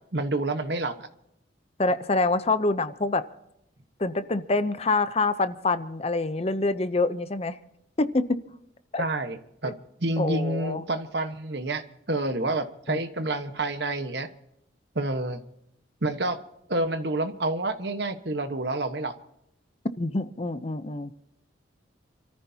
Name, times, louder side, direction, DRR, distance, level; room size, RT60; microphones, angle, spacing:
voice 1, 0.1-1.1 9.0-9.7 10.0-11.8 12.1-14.3 14.9-15.4 16.0-16.4 16.7-19.1, right 2 dB, 60° right, 9 dB, 1.3 m, -28 dB
voice 2, 1.8-3.2 4.0-7.6 8.0-8.4 8.9-9.0 9.6-9.7 10.2-10.8 12.9-13.0 20.0-21.1, left 3 dB, 30° left, 12 dB, 0.7 m, -26 dB
28.5 x 14.0 x 2.8 m, 0.81 s
head